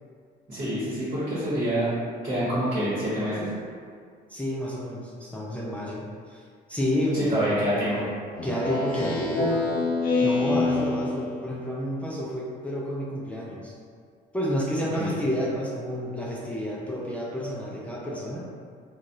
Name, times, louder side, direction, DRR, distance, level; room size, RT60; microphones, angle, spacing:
voice 1, 0.5-1.9 2.2-3.5 7.1-8.1 15.0-15.2, equal, 40° right, -11 dB, 1.2 m, -26 dB
voice 2, 4.3-6.4 6.7-7.2 8.4-9.6 10.2-13.7 14.3-18.4, left 1 dB, 10° left, -5 dB, 0.4 m, -30 dB
Speech synthesizer, 8.4-11.4, left 3 dB, 60° left, 0.5 m, -26 dB
3.1 x 2.3 x 2.6 m, 2.1 s
cardioid pair, 110°, 17 cm